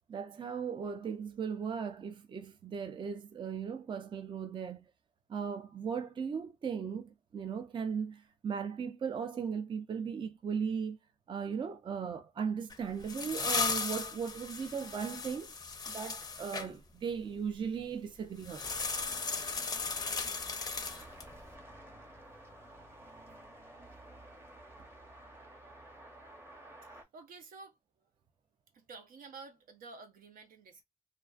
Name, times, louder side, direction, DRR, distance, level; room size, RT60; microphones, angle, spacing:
voice 1, 0.1-4.9 5.3-11.0 11.3-15.5 15.9-18.7, right 6 dB, 35° right, 0.4 m, -37 dB
sound 1, 12.7-16.7 18.4-21.3, left 4 dB, 25° left, 0.5 m, -36 dB
sound 2, 18.6-27.0, right 1 dB, 15° right, 0.8 m, -52 dB
voice 2, 23.0-23.6 26.8-27.8 28.7-30.8, right 4 dB, 80° right, 0.8 m, -52 dB
2.4 x 2.2 x 2.3 m
cardioid pair, 105°, 14 cm